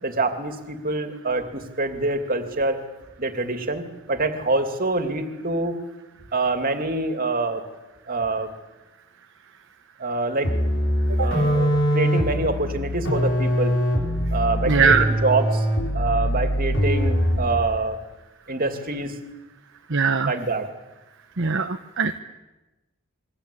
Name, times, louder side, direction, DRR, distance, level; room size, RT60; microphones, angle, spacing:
voice 1, 0.0-2.8 3.2-5.8 6.3-7.6 8.1-8.5 10.0-10.5 11.2-13.8 14.3-15.7 15.9-18.0 18.5-19.1 20.2-20.7, right 2 dB, 40° right, 6 dB, 2.8 m, -25 dB
sound 1, 10.4-17.6, equal, 60° left, 7.7 m, -23 dB
voice 2, 14.7-15.1 19.9-20.3 21.4-22.2, right 5 dB, 55° right, 7 dB, 1.1 m, -20 dB
27.5 x 23.5 x 8.7 m, 1.1 s
head